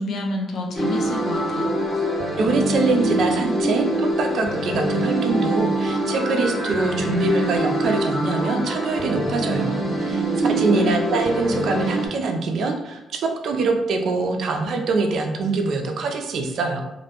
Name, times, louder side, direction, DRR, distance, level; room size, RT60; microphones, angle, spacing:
voice 1, 0.0-1.7 10.5-11.0, left 2 dB, 65° left, 1 dB, 0.5 m, -28 dB
sound 1, 0.8-12.1, right 1 dB, 20° left, 1.0 m, -24 dB
voice 2, 2.4-16.8, right 3 dB, 65° right, 4 dB, 0.4 m, -24 dB
2.5 x 2.1 x 2.8 m, 0.93 s
cardioid pair, 90°, 0 cm